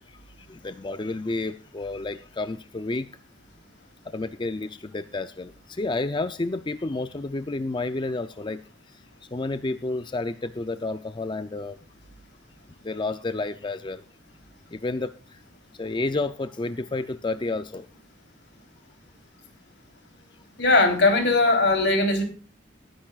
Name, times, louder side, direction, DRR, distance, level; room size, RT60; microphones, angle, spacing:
voice 1, 0.0-3.1 4.0-11.8 12.8-14.0 14.7-15.4 15.7-17.9, left 2 dB, 25° left, 11 dB, 0.5 m, -31 dB
voice 2, 20.6-22.2, left 2 dB, 65° left, 5 dB, 3.6 m, -19 dB
20.5 x 10.5 x 2.4 m, 0.35 s
head